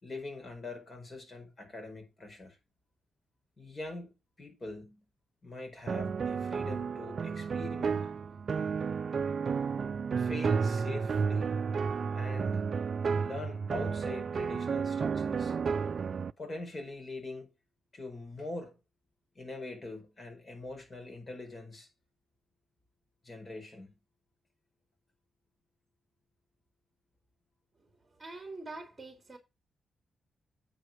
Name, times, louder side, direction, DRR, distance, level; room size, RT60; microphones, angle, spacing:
voice 1, 0.0-2.6 3.6-5.0 5.4-8.1 10.2-11.6 12.1-12.6 13.2-15.5 16.4-17.5 17.9-18.7 19.3-21.9 23.2-23.9, left 2 dB, 35° left, 4.7 m, -43 dB
sound 1, 5.9-16.3, right 5 dB, 50° right, 0.4 m, -32 dB
voice 2, 28.1-29.4, right 3 dB, 20° right, 3.0 m, -44 dB
8.9 x 4.8 x 6.0 m
cardioid pair, 95°, 0 cm